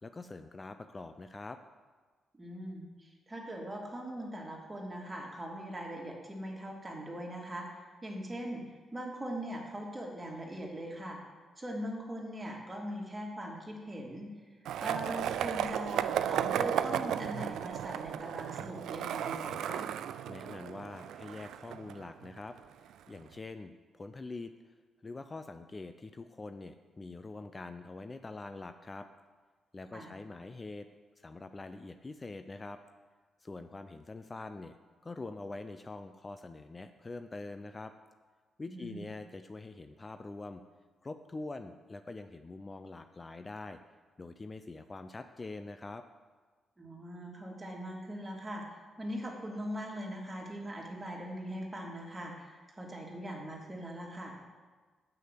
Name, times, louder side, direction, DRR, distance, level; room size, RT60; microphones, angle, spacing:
voice 1, 0.0-1.6 20.3-24.7 25.0-29.1 29.7-30.9 31.2-32.8 33.4-34.7 35.0-37.9 38.6-40.6 41.0-43.8 44.2-46.0, left 3 dB, 30° left, 9 dB, 0.6 m, -44 dB
voice 2, 2.4-11.2 11.6-14.3 14.8-19.9 29.9-30.1 38.7-39.1 46.8-54.4, equal, 25° right, -1 dB, 2.8 m, -41 dB
Skateboard, 14.7-22.6, right 10 dB, 70° right, 0.3 m, -34 dB
7.1 x 6.4 x 7.9 m, 1.4 s
hypercardioid pair, 40°, 0 cm